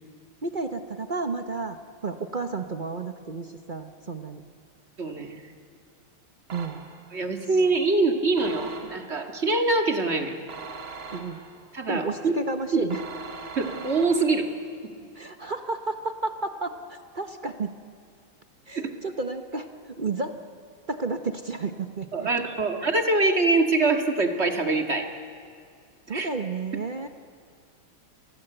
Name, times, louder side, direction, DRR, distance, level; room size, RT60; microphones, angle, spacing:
voice 1, 0.4-1.8 2.0-4.4 6.5-6.8 11.1-11.4 11.9-13.0 15.1-17.8 18.7-20.4 20.9-22.3 26.1-27.1, right 3 dB, 50° right, 7 dB, 0.5 m, -32 dB
voice 2, 5.0-5.4 7.1-10.4 11.7-12.3 12.7-12.9 13.6-14.5 18.7-18.9 22.1-25.1 26.1-26.3, right 3 dB, 30° right, 4 dB, 2.1 m, -24 dB
sound 1, 6.5-7.2 8.4-9.3 10.5-11.7 12.9-14.6, right 5 dB, 70° right, 2.9 m, -41 dB
29.5 x 23.5 x 7.9 m, 2.3 s
omnidirectional pair, 2.4 m